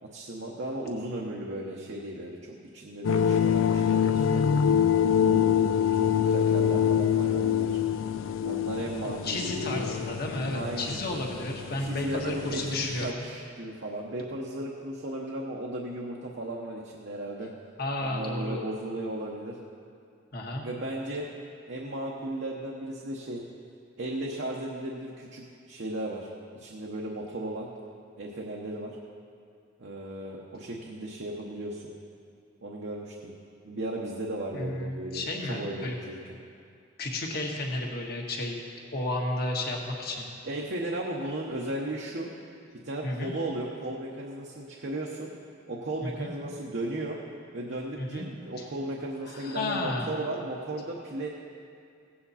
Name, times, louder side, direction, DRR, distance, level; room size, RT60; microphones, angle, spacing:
voice 1, 0.0-4.7 5.0-5.6 5.9-7.8 8.4-9.8 10.5-11.0 11.8-17.5 18.0-19.6 20.6-21.2 21.7-23.4 24.0-27.7 28.2-28.9 29.8-31.9 32.6-33.3 33.6-36.2 40.4-42.3 42.8-45.3 45.7-47.2 47.5-51.3, right 1 dB, 60° right, -2 dB, 1.0 m, -35 dB
sound 1, 3.0-13.1, left 8 dB, 80° left, 0.4 m, -25 dB
voice 2, 9.2-13.3 17.8-18.7 20.3-20.6 34.5-35.9 37.0-38.6 38.9-40.3 43.0-43.3 46.0-46.3 48.0-48.3 48.6-48.7 49.3-50.1, left 2 dB, 50° left, 0 dB, 1.6 m, -32 dB
16.5 x 8.6 x 4.2 m, 2.4 s
head